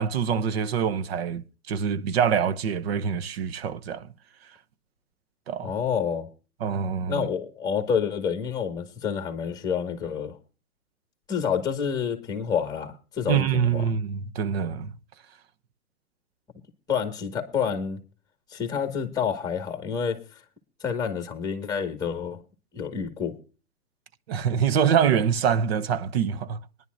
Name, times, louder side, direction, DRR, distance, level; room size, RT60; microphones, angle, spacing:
voice 1, 0.0-4.1 5.5-5.7 6.6-7.3 13.3-14.9 24.3-26.6, right 7 dB, 45° right, 0.8 m, -25 dB
voice 2, 5.6-6.3 7.1-10.4 11.3-13.9 16.9-18.0 18.5-20.2 20.8-22.4 22.7-23.4, left 7 dB, 10° left, 1.9 m, -28 dB
21.0 x 11.0 x 2.6 m
hypercardioid pair, 140°, 44 cm